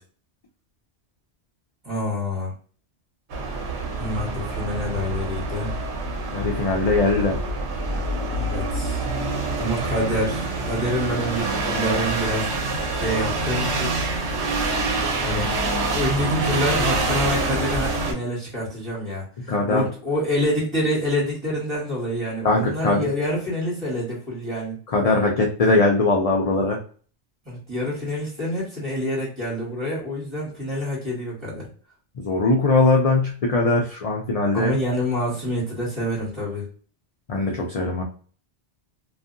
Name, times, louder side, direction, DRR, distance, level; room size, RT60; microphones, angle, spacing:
voice 1, 1.8-2.5 4.0-5.7 8.3-9.1 9.6-12.5 12.9-14.0 15.2-15.5 15.9-24.8 27.4-31.7 34.5-36.7, left 1 dB, 25° right, -6 dB, 1.5 m, -27 dB
sound 1, 3.3-18.1, right 2 dB, 75° right, 1.0 m, -26 dB
voice 2, 6.3-7.4 19.5-19.9 22.4-23.1 24.9-26.8 32.2-34.7 37.3-38.0, left 3 dB, 60° left, 0 dB, 0.4 m, -20 dB
2.6 x 2.4 x 2.5 m, 0.42 s
omnidirectional pair, 1.1 m